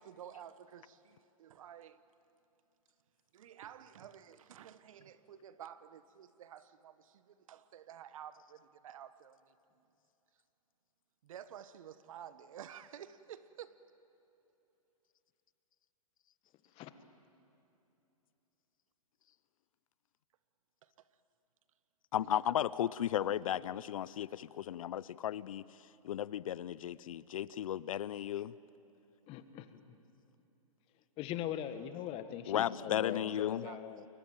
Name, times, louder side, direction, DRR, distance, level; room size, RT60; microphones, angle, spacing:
voice 1, 0.0-2.0 3.3-9.5 11.2-13.8 20.8-20.9 22.2-22.4 22.7-22.9 33.1-34.0, right 9 dB, 65° right, 14 dB, 1.4 m, -52 dB
voice 2, 22.1-25.6 26.0-28.5 32.5-33.6, left 11 dB, 65° left, 19 dB, 0.7 m, -35 dB
voice 3, 29.3-30.0 31.2-34.1, left 10 dB, 30° left, 10 dB, 1.7 m, -41 dB
28.5 x 22.5 x 9.2 m, 2.9 s
hypercardioid pair, 130°, 19 cm